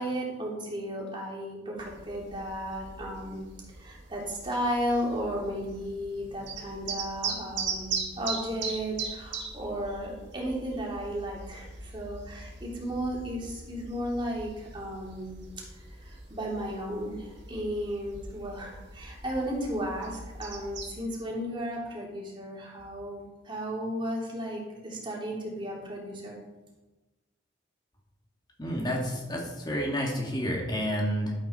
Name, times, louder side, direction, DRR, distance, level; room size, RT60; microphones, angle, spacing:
voice 1, 0.0-3.5 3.8-15.4 16.0-26.4, equal, 25° right, -3 dB, 3.1 m, -34 dB
sound 1, 1.8-21.0, right 5 dB, 75° right, 2.3 m, -40 dB
voice 2, 28.6-31.3, equal, 25° left, -1 dB, 2.5 m, -30 dB
12.0 x 8.5 x 4.5 m, 1.1 s
head